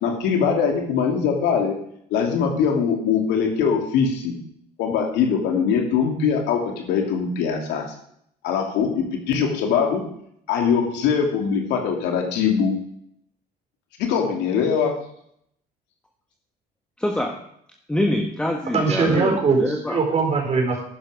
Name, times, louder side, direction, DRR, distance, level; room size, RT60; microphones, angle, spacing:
voice 1, 0.0-1.8 2.1-4.3 4.8-7.8 8.4-10.0 10.5-12.8 14.0-15.0, left 6 dB, 90° left, 2 dB, 2.8 m, -22 dB
voice 2, 17.0-17.4 17.9-20.0, left 1 dB, 5° left, 2 dB, 1.3 m, -25 dB
voice 3, 18.7-19.6 19.9-20.8, right 4 dB, 40° right, 1 dB, 4.5 m, -20 dB
12.0 x 10.0 x 5.1 m, 0.70 s
cardioid pair, 110°, 17 cm